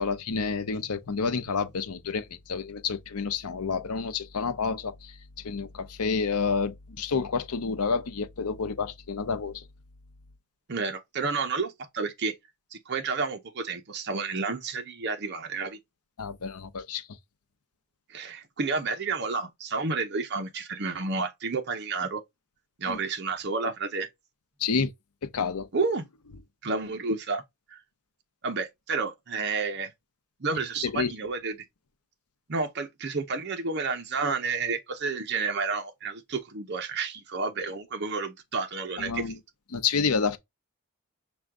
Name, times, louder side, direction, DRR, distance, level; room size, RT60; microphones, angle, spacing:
voice 1, 0.0-9.6 16.2-17.1 22.9-23.0 24.6-24.9 25.2-25.7 30.8-31.1 39.0-39.4 39.7-40.4, left 5 dB, 90° left, 0.7 m, -29 dB
voice 2, 10.7-12.4 12.7-15.8 18.1-22.2 22.8-24.1 25.7-26.0 26.6-27.4 27.7-27.8 28.4-29.9 30.4-31.5 32.5-39.2, right 4 dB, 50° right, 0.7 m, -30 dB
6.2 x 2.3 x 3.6 m
head